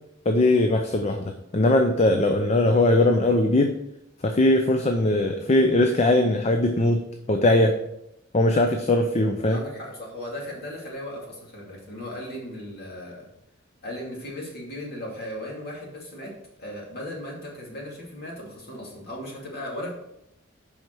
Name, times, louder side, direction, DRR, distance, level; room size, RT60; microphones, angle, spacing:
voice 1, 0.3-3.8 4.2-7.8 8.3-9.6, left 1 dB, 30° left, 5 dB, 0.5 m, -20 dB
voice 2, 9.4-13.3 13.8-16.3 16.6-19.9, left 1 dB, 45° left, -3 dB, 2.6 m, -37 dB
7.7 x 5.6 x 4.7 m, 0.83 s
head